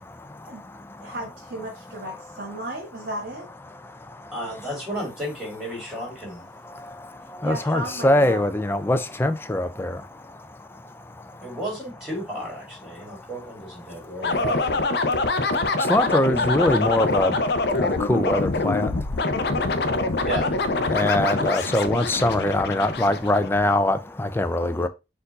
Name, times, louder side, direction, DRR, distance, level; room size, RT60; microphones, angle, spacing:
voice 1, 1.0-3.5 7.4-8.5, right 1 dB, 70° right, 1.3 m, -34 dB
voice 2, 4.3-6.5 11.4-14.7 16.4-16.5 20.2-20.6, right 1 dB, 5° right, 2.0 m, -33 dB
voice 3, 7.3-10.0 15.8-17.4 17.7-18.9 20.9-24.9, left 1 dB, 15° left, 0.3 m, -22 dB
sound 1, 14.2-23.8, left 3 dB, 70° left, 0.5 m, -25 dB
4.4 x 2.6 x 3.9 m
head